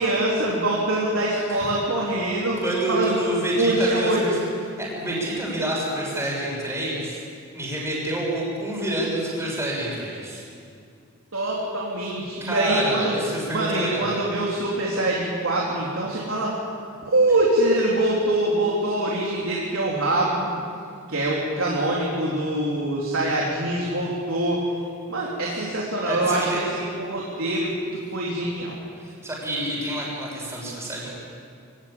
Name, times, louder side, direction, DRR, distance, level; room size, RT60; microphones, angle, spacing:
voice 1, 0.0-2.6 2.9-3.2 3.5-4.2 11.3-13.1 13.5-16.5 17.0-20.5 21.1-24.6 25.1-28.8, right 1 dB, 75° right, -4 dB, 3.7 m, -24 dB
voice 2, 2.6-4.4 4.8-7.2 7.5-10.4 12.4-14.2 26.0-26.6 29.0-31.1, right 1 dB, 15° right, -5 dB, 6.1 m, -28 dB
23.5 x 17.5 x 8.8 m, 2.4 s
head